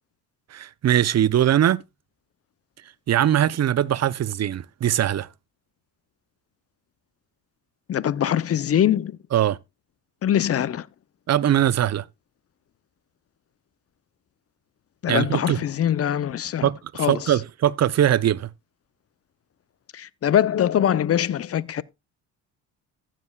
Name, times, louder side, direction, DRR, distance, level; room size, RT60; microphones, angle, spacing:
voice 1, 0.5-1.8 3.1-5.3 9.3-9.6 11.3-12.0 15.1-15.6 16.6-16.8 17.1-18.5, right 11 dB, 45° right, 0.6 m, -21 dB
voice 2, 7.9-9.2 10.2-10.9 15.0-16.7 17.0-17.4 19.9-21.8, left 10 dB, 40° left, 0.6 m, -23 dB
15.0 x 7.5 x 2.3 m
supercardioid pair, 70°, 38 cm